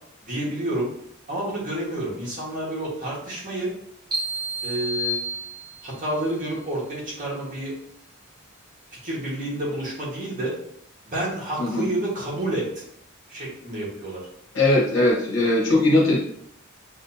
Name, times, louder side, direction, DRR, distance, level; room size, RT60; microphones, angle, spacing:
voice 1, 0.2-0.9 1.3-3.7 4.6-5.2 5.8-7.7 8.9-10.5 11.0-12.8 13.3-14.2, right 1 dB, 40° right, -5 dB, 1.6 m, -29 dB
sound 1, 4.1-6.0, right 1 dB, 25° right, 1.2 m, -30 dB
voice 2, 14.5-16.2, left 2 dB, 65° left, -4 dB, 1.4 m, -19 dB
6.5 x 2.6 x 2.8 m, 0.69 s
head